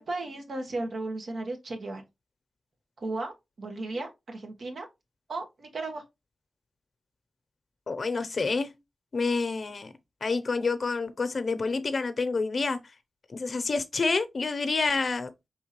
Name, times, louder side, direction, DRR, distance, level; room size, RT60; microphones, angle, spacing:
voice 1, 0.0-2.0 3.0-4.8 5.3-6.0, right 2 dB, 75° right, 1.4 m, -35 dB
voice 2, 7.9-8.7 9.1-9.9 10.2-12.8 13.3-15.3, left 4 dB, 55° left, 0.7 m, -28 dB
4.4 x 3.6 x 3.0 m
cardioid pair, 65°, 0 cm